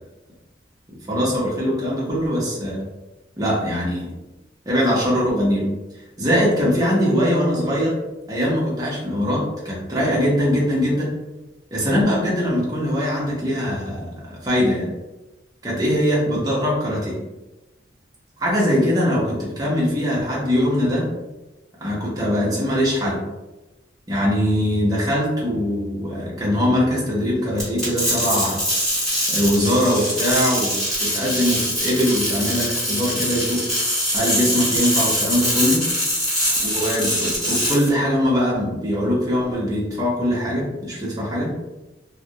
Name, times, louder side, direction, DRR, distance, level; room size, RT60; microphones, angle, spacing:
voice 1, 1.1-2.8 3.4-4.1 4.7-5.7 6.2-7.9 8.3-11.1 11.7-14.9 15.6-17.2 18.4-21.1 21.8-23.2 24.1-28.6 29.3-33.7 34.1-35.8 36.6-41.5, equal, 20° right, -6 dB, 0.6 m, -21 dB
sound 1, 27.6-37.9, equal, ahead, 1.1 m, -23 dB
2.3 x 2.0 x 2.7 m, 1.0 s
head